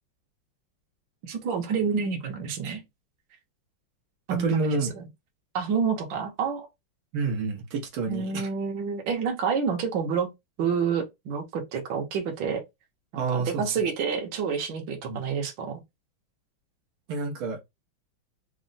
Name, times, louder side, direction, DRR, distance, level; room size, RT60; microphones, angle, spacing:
voice 1, 1.2-2.8 4.3-4.8 5.5-6.7 8.1-10.3 10.6-12.6 13.3-15.8, right 6 dB, 70° right, 1.6 m, -28 dB
voice 2, 4.3-4.9 7.1-8.5 13.2-13.8 15.0-15.2 17.1-17.6, right 4 dB, 90° right, 1.7 m, -28 dB
4.1 x 2.0 x 3.9 m
omnidirectional pair, 2.2 m